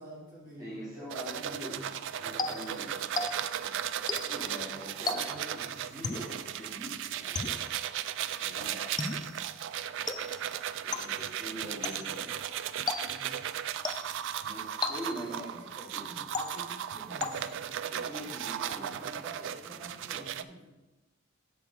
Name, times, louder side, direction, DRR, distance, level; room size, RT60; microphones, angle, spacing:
voice 1, 0.0-2.8 5.3-6.0 11.7-12.3 13.1-13.5 15.2-18.5 18.7-20.8, right 1 dB, 40° right, -5 dB, 2.2 m, -50 dB
voice 2, 0.6-1.8 2.2-3.2 3.6-3.7 4.3-7.5 8.4-8.9 10.8-12.3 14.0-14.1 14.4-16.1 17.9-19.0, equal, 15° right, -8 dB, 1.5 m, -43 dB
sound 1, 1.1-20.4, right 10 dB, 60° right, 0.3 m, -36 dB
sound 2, 2.4-3.7 4.1-4.5 5.1-5.6 6.0-6.4 7.3-7.8 9.0-9.4 10.1-10.5 10.9-11.3 11.8-12.2 12.9-13.4 13.8-14.3 14.8-15.4 16.3-16.8 17.2-17.7, left 4 dB, 20° left, 0.4 m, -36 dB
7.2 x 4.6 x 5.3 m, 1.1 s
head